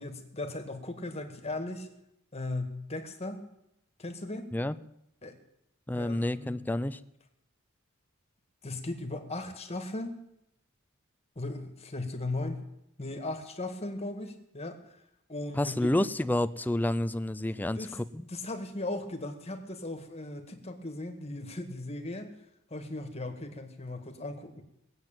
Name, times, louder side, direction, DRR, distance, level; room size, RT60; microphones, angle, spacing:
voice 1, 0.0-1.9 2.3-3.5 4.0-4.5 5.2-5.4 5.9-6.6 8.6-10.2 11.4-12.6 13.0-14.8 15.3-15.9 17.8-18.0 18.3-22.3 22.7-24.6, left 2 dB, 30° left, 6 dB, 1.9 m, -37 dB
voice 2, 5.9-7.0 15.5-18.3, left 1 dB, 10° left, 12 dB, 0.5 m, -29 dB
19.5 x 8.0 x 9.0 m, 0.82 s
head